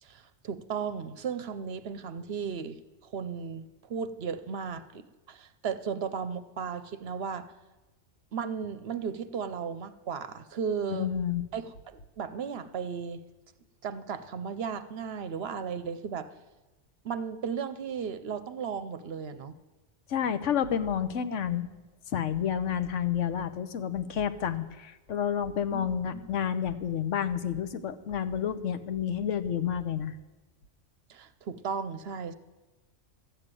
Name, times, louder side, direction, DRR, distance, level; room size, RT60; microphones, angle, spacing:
voice 1, 0.0-7.5 8.3-11.1 11.5-13.2 13.8-16.3 17.0-19.6 25.7-25.8 31.1-32.3, right 6 dB, 60° right, 12 dB, 0.9 m, -35 dB
voice 2, 10.9-11.4 20.1-21.7 22.1-30.1, left 8 dB, 80° left, 11 dB, 1.2 m, -30 dB
13.0 x 7.8 x 9.0 m, 1.1 s
omnidirectional pair, 1.3 m